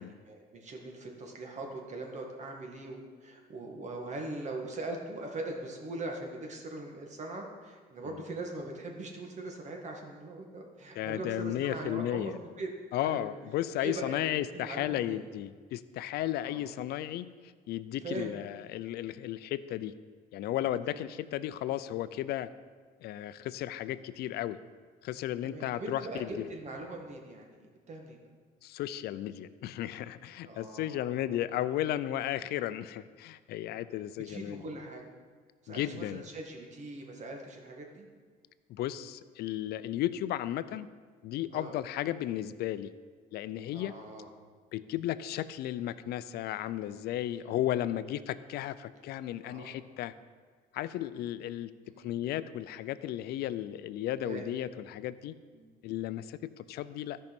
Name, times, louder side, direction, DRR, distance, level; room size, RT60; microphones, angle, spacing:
voice 1, 0.0-12.7 13.0-13.3 13.8-14.3 14.5-15.2 16.4-16.6 18.0-18.3 20.9-21.0 25.5-28.2 30.4-31.4 33.7-33.8 34.3-35.1 35.6-38.1 41.5-41.8 43.7-44.3 47.3-47.5 49.4-49.8 51.8-52.1 54.2-54.5 55.5-55.8, right 2 dB, 45° right, 1 dB, 1.9 m, -41 dB
voice 2, 10.9-12.4 12.9-20.0 20.3-22.5 23.0-24.6 25.0-26.5 28.6-34.6 35.7-36.2 38.7-40.9 41.2-42.9 43.3-43.9 44.7-50.1 50.7-55.3 55.8-57.2, left 13 dB, 70° left, 14 dB, 0.5 m, -34 dB
13.5 x 5.4 x 5.3 m, 1.5 s
cardioid pair, 110°, 17 cm